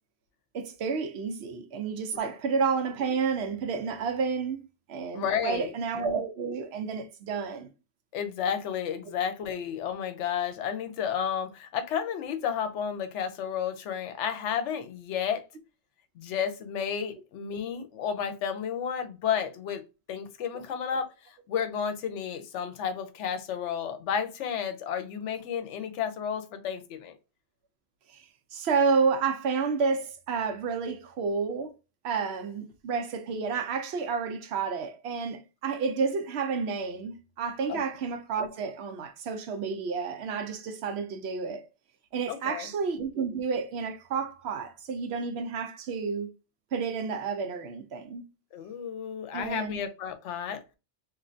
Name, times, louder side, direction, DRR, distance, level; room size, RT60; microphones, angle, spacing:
voice 1, 0.5-4.6 4.9-7.7 28.1-31.7 32.0-41.7 42.1-46.3 46.7-48.2 49.3-49.8, right 5 dB, 70° right, 0.8 m, -30 dB
voice 2, 5.1-5.7 8.1-15.4 16.2-27.2 37.7-37.8 42.3-42.7 48.5-50.6, left 8 dB, 85° left, 0.9 m, -32 dB
3.1 x 2.5 x 2.5 m
omnidirectional pair, 1.2 m